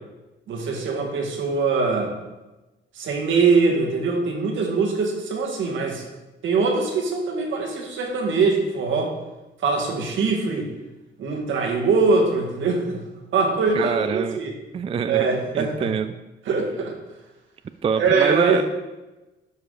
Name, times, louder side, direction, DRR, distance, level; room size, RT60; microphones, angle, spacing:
voice 1, 0.5-2.1 2.9-6.0 6.4-9.1 9.6-10.7 11.2-13.0 13.3-14.5 15.1-15.9 16.5-16.9 18.0-18.6, right 4 dB, 75° right, 0 dB, 1.9 m, -22 dB
voice 2, 13.7-14.4 14.7-15.3 15.5-16.1 17.8-18.6, right 7 dB, 30° right, 11 dB, 0.3 m, -25 dB
11.5 x 4.8 x 4.0 m, 1.1 s
cardioid pair, 90°, 20 cm